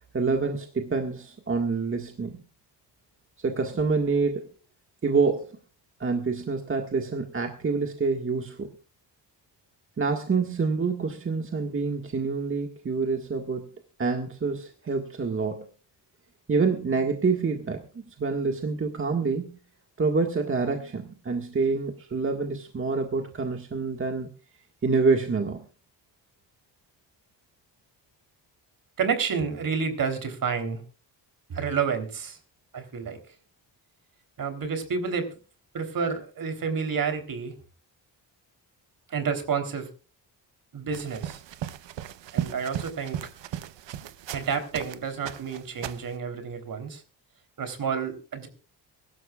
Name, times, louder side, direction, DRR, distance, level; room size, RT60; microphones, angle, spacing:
voice 1, 0.1-2.4 3.4-4.5 5.0-5.6 6.0-8.7 10.0-13.7 14.0-15.7 16.5-17.8 18.1-19.5 20.0-24.3 24.8-25.6, right 4 dB, 30° right, 3 dB, 1.8 m, -27 dB
voice 2, 29.0-30.8 31.5-32.4 32.7-33.2 34.4-35.4 35.7-37.5 39.1-39.9 40.7-41.4 42.3-43.2 44.3-47.0 47.6-48.5, right 6 dB, 50° right, 7 dB, 3.7 m, -29 dB
sound 1, 40.9-45.0 45.3-46.1, right 11 dB, 80° right, 1.0 m, -36 dB
24.0 x 12.5 x 2.4 m, 0.36 s
cardioid pair, 140°, 43 cm